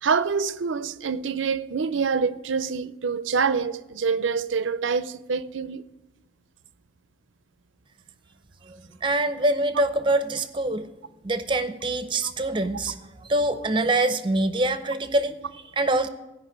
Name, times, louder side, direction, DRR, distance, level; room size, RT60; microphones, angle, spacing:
voice 1, 0.0-5.8 12.2-12.3, right 5 dB, 85° right, 0.6 m, -26 dB
voice 2, 8.7-10.9 11.2-16.1, right 2 dB, 25° right, 0.6 m, -25 dB
16.5 x 5.6 x 8.7 m
head